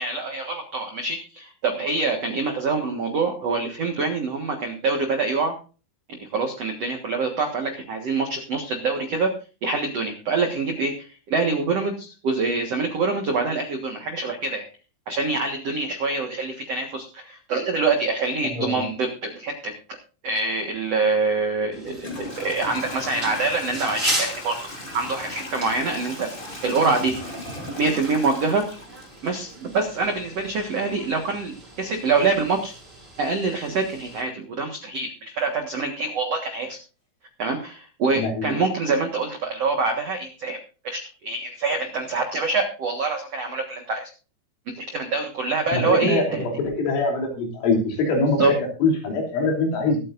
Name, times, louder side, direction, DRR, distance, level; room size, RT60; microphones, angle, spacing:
voice 1, 0.0-5.5 6.1-9.3 9.6-14.7 15.1-19.7 20.2-24.6 24.9-26.3 26.6-27.4 27.8-28.6 29.2-32.7 33.2-36.8 37.4-40.6 40.8-44.1 44.8-46.4 48.4-48.5, right 3 dB, 75° right, 4 dB, 1.4 m, -25 dB
voice 2, 18.5-18.9 38.2-38.6 45.7-48.4 48.8-50.0, left 3 dB, 75° left, 1 dB, 5.6 m, -23 dB
Toilet flush / Trickle dribble, 21.2-21.3 22.0-29.8, left 1 dB, 15° left, 2.0 m, -37 dB
sound 1, 21.7-34.2, right 1 dB, 15° right, 3.8 m, -37 dB
23.0 x 9.0 x 2.6 m, 0.35 s
omnidirectional pair, 5.6 m